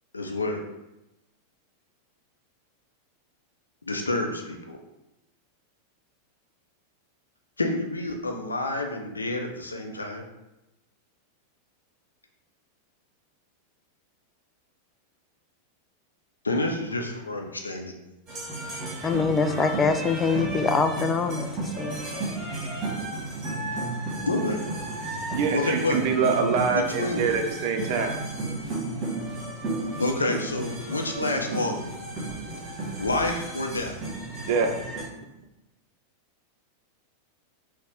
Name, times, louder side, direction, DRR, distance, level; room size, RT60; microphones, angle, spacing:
voice 1, 0.1-0.6 3.8-4.8 7.6-10.2 16.4-17.9 24.2-24.6 25.5-26.0 26.7-27.3 30.0-31.9 33.0-34.0, left 2 dB, 80° left, 3 dB, 0.5 m, -28 dB
sound 1, 18.3-35.1, right 2 dB, 30° right, 1.3 m, -33 dB
voice 2, 19.0-22.5, left 4 dB, 20° left, 7 dB, 0.3 m, -25 dB
voice 3, 25.3-28.1 34.4-34.7, right 5 dB, 45° right, 4 dB, 0.5 m, -24 dB
4.2 x 2.1 x 3.4 m, 0.95 s
figure-of-eight pair, 90°, 0 cm